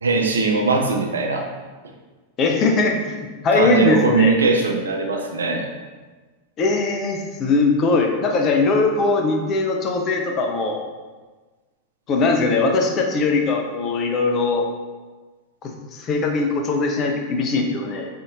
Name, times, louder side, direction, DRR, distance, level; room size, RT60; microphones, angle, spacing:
voice 1, 0.0-1.5 3.5-5.7, right 4 dB, 70° right, 3 dB, 0.4 m, -20 dB
voice 2, 2.4-4.3 6.6-10.8 12.1-14.6 15.6-18.1, left 3 dB, 30° left, 2 dB, 0.5 m, -20 dB
5.0 x 2.7 x 2.4 m, 1.3 s
figure-of-eight pair, 90°, 0 cm